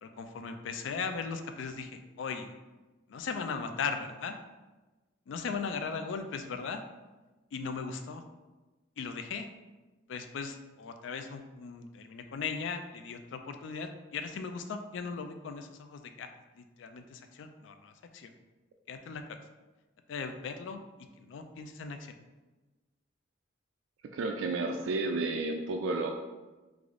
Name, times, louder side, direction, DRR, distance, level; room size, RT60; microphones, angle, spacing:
voice 1, 0.0-2.5 3.1-4.4 5.3-6.8 7.5-8.2 9.0-9.5 10.1-18.3 18.9-19.2 20.1-20.8 21.2-22.2, left 5 dB, 75° left, 7 dB, 0.3 m, -38 dB
voice 2, 24.1-26.1, right 3 dB, 80° right, 2 dB, 0.3 m, -31 dB
3.4 x 2.4 x 3.6 m, 1.2 s
head